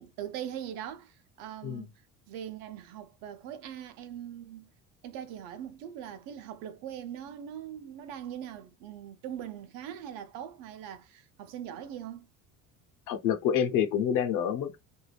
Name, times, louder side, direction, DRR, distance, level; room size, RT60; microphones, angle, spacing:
voice 1, 0.0-1.9 2.3-4.7 5.0-12.3, right 10 dB, 85° right, 0.7 m, -41 dB
voice 2, 13.1-14.8, left 8 dB, 70° left, 0.8 m, -27 dB
2.6 x 2.4 x 3.3 m
cardioid pair, 155°, 33 cm